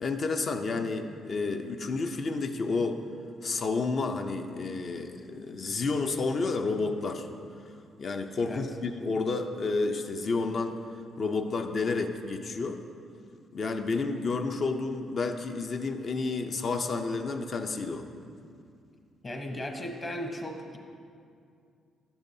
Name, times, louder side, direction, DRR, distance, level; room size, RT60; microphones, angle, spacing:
voice 1, 0.0-3.0 3.4-7.3 8.0-10.8 11.2-12.8 13.5-18.1, left 3 dB, 50° left, 5 dB, 0.6 m, -30 dB
voice 2, 19.2-20.8, left 1 dB, 30° left, 2 dB, 1.0 m, -36 dB
11.5 x 7.0 x 2.7 m, 2.4 s
cardioid pair, 90°, 0 cm